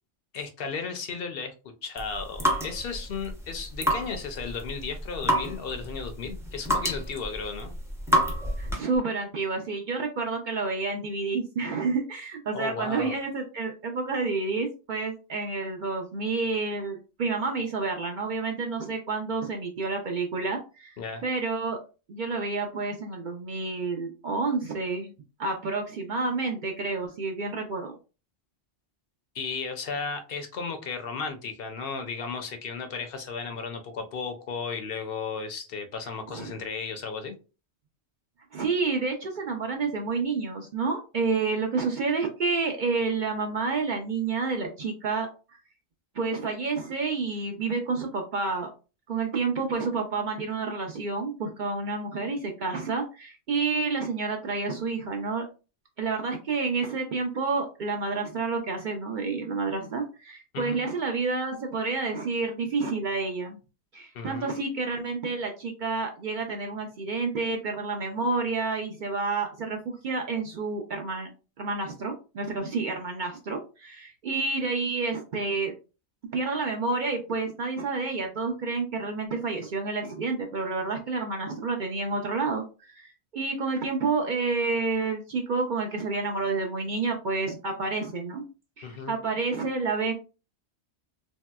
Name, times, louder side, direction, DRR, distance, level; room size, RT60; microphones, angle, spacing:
voice 1, 0.3-1.5 1.8-7.7 12.5-13.1 21.0-21.2 29.3-37.3 60.5-60.8 64.1-64.6 88.8-89.1, left 5 dB, 65° left, 6 dB, 0.7 m, -34 dB
sound 1, 2.0-9.0, equal, 5° right, 0.4 m, -29 dB
voice 2, 8.6-20.9 21.2-21.8 22.1-25.1 25.4-28.0 36.3-36.5 38.5-45.3 46.1-48.7 49.1-55.4 56.0-63.6 63.9-71.3 71.6-75.7 76.3-88.4 88.8-90.1, right 4 dB, 55° right, 3 dB, 0.6 m, -29 dB
3.1 x 2.7 x 2.2 m, 0.32 s
omnidirectional pair, 1.2 m